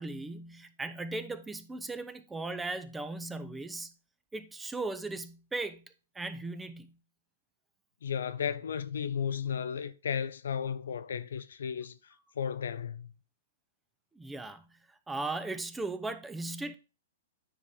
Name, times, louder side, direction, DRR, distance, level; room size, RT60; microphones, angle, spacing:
voice 1, 0.0-3.9 4.3-5.8 6.1-6.9 14.1-16.7, right 2 dB, 10° right, 0.7 m, -37 dB
voice 2, 8.0-13.1, left 7 dB, 70° left, 0.6 m, -34 dB
9.8 x 4.8 x 3.7 m
hypercardioid pair, 115°, 0 cm